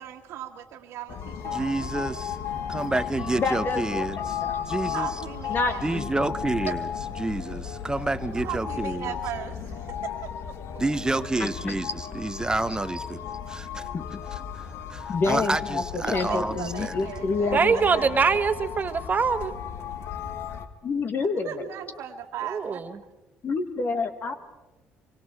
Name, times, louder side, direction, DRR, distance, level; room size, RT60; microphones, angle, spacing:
voice 1, 0.0-2.2 4.9-5.9 6.7-6.8 8.3-10.3 16.0-17.8 21.4-22.8, right 11 dB, 70° right, -1 dB, 1.7 m, -37 dB
sound 1, 1.1-20.7, left 8 dB, 60° left, 1.6 m, -34 dB
voice 2, 1.5-2.4 2.7-4.4 4.7-5.1 5.8-6.9 7.2-9.2 10.8-13.2 13.5-13.8 14.3-17.1, right 2 dB, 15° right, 13 dB, 1.0 m, -29 dB
voice 3, 3.4-4.1 4.4-4.6 5.5-6.1 11.4-11.8 13.9-14.0 15.1-18.1 20.8-21.7 23.4-24.3, left 4 dB, 45° left, 8 dB, 1.9 m, -28 dB
voice 4, 17.5-19.5 22.5-22.9, right 5 dB, 35° right, 10 dB, 1.6 m, -23 dB
25.5 x 25.0 x 4.5 m, 1.0 s
supercardioid pair, 65°, 5 cm